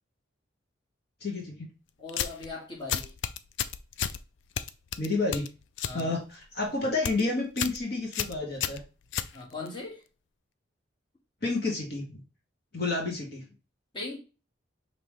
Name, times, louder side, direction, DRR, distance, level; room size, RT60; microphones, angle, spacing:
voice 1, 1.2-1.7 5.0-5.5 5.9-6.2 6.5-8.8 11.4-12.2 12.7-13.4, left 3 dB, 50° left, 1.4 m, -30 dB
voice 2, 2.0-3.1 5.8-6.2 9.3-10.0 13.9-14.2, left 3 dB, 25° left, 1.5 m, -39 dB
sound 1, 2.1-2.5 2.9-4.2 4.6-6.0 6.3-6.6 6.9-7.2 7.6-7.8 8.1-9.8, left 9 dB, 70° left, 0.4 m, -32 dB
5.4 x 3.0 x 3.1 m
head